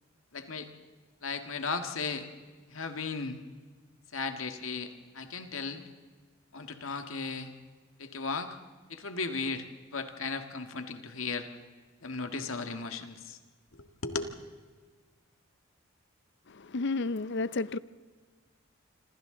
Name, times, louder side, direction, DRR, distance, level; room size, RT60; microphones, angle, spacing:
voice 1, 0.3-0.7 1.2-2.3 2.7-3.4 4.1-5.8 6.5-7.5 8.0-8.6 8.9-9.7 9.9-11.5 12.0-13.4 13.7-14.2, left 4 dB, 90° left, 1.8 m, -36 dB
voice 2, 16.5-17.8, left 3 dB, 60° left, 0.6 m, -31 dB
27.0 x 26.0 x 3.9 m
head